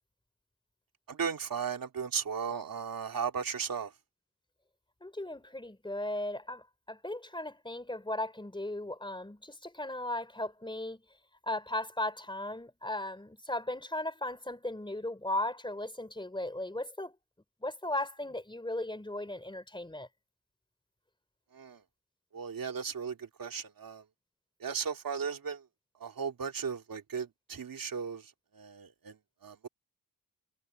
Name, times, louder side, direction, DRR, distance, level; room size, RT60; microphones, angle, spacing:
voice 1, 1.1-3.9 21.5-21.8 22.3-24.0 24.6-25.6 26.0-29.2 29.4-29.7, right 6 dB, 65° right, 2.7 m, -36 dB
voice 2, 5.0-11.0 11.4-17.2 17.6-20.1, left 1 dB, 15° left, 3.5 m, -36 dB
wide cardioid pair, 115°, 37 cm